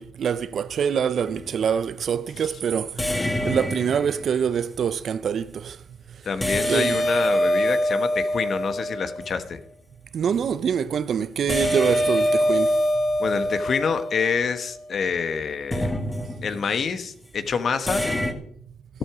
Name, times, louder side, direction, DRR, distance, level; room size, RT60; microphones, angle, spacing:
voice 1, 0.0-5.8 6.1-6.2 6.7-7.0 10.1-12.8, right 7 dB, 55° right, 0.7 m, -25 dB
sound 1, 1.2-1.6 3.0-4.5 6.4-9.4 11.5-14.9 15.7-16.7 17.9-18.3, equal, 10° left, 1.9 m, -25 dB
voice 2, 6.2-9.6 13.2-15.9 16.4-18.0, left 6 dB, 50° left, 1.3 m, -27 dB
13.0 x 12.5 x 5.0 m
cardioid pair, 90°, 0 cm